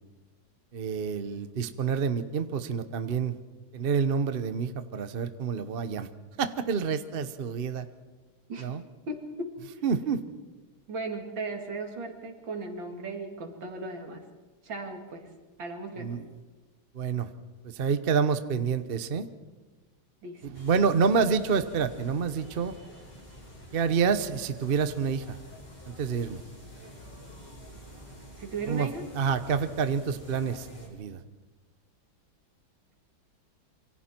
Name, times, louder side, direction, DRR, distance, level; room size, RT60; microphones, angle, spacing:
voice 1, 0.7-3.4 3.7-6.1 6.4-7.9 8.6-8.8 9.8-10.2 16.0-16.2 16.9-17.3 17.6-19.3 20.4-22.7 23.7-25.4 26.0-26.4 28.7-28.9 29.1-31.2, right 6 dB, 45° right, 11 dB, 0.7 m, -28 dB
voice 2, 9.1-9.5 9.7-9.8 10.9-14.2 14.6-15.3 15.6-16.1 20.2-20.4 28.4-29.0, right 3 dB, 65° right, 3 dB, 3.2 m, -36 dB
sound 1, 20.5-30.9, equal, 20° left, 5.1 m, -47 dB
26.5 x 25.0 x 4.5 m, 1.2 s
omnidirectional pair, 2.2 m